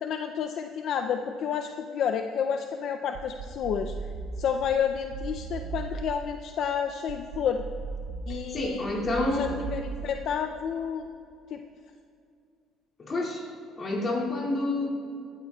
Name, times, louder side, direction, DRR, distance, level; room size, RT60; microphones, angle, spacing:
voice 1, 0.0-3.9 4.4-7.6 8.3-8.9 9.3-11.1 11.5-11.6, left 7 dB, 60° left, 6 dB, 0.5 m, -30 dB
sound 1, 3.2-6.4 7.1-10.4, right 5 dB, 70° right, 0.7 m, -38 dB
voice 2, 8.3-9.6 13.1-13.4 13.8-14.9, left 2 dB, 35° left, -2 dB, 2.5 m, -28 dB
18.5 x 12.5 x 2.4 m, 2.5 s
cardioid pair, 120°, 0 cm